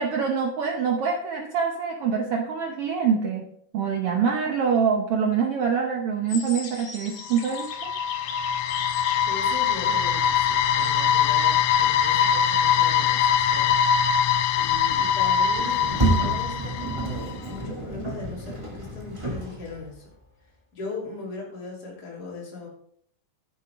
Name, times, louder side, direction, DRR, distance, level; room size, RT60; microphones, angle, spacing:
voice 1, 0.0-3.5 3.7-7.9, right 6 dB, 85° right, 2 dB, 1.3 m, -25 dB
sound 1, 6.3-12.4, left 6 dB, 55° left, 2.5 m, -40 dB
sound 2, 7.3-17.3, left 8 dB, 90° left, 1.5 m, -22 dB
voice 2, 9.3-13.8 14.6-20.0 20.7-22.7, left 3 dB, 30° left, -3 dB, 3.2 m, -39 dB
Sliding door, 15.5-20.0, right 2 dB, 15° right, 1.0 m, -29 dB
10.5 x 9.2 x 3.6 m, 0.66 s
omnidirectional pair, 3.9 m